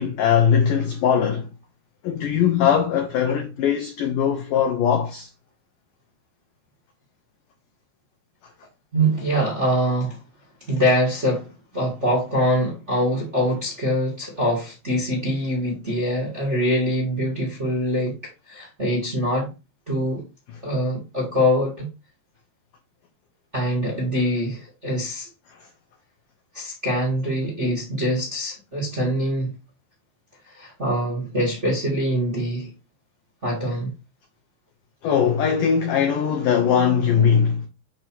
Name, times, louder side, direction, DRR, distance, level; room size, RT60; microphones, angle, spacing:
voice 1, 0.0-1.5 2.0-5.3 35.0-37.7, left 7 dB, 90° left, 1.8 m, -20 dB
voice 2, 8.9-10.2 10.7-11.5 11.7-18.2 18.5-19.5 19.9-20.2 20.6-21.9 23.5-25.3 26.5-29.5 30.5-32.7 33.4-33.9, equal, 35° right, 1.1 m, -24 dB
8.0 x 2.9 x 6.0 m
omnidirectional pair, 5.0 m